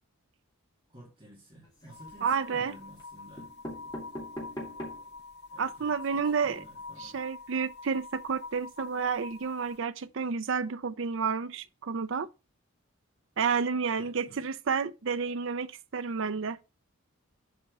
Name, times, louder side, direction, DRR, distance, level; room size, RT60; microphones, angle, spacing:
voice 1, 0.9-3.5 5.5-7.2 13.9-14.5, right 1 dB, 25° right, 2.8 m, -52 dB
sound 1, 1.6-2.3 3.0-3.1 3.4-5.2 5.7-5.8 6.0-6.1 6.3-6.5, equal, 20° left, 2.4 m, -42 dB
sound 2, 1.9-9.8, left 3 dB, 50° left, 0.7 m, -46 dB
voice 2, 2.2-2.7 5.6-6.6 7.0-12.3 13.4-16.6, right 5 dB, 60° right, 0.5 m, -30 dB
7.6 x 4.3 x 5.3 m
head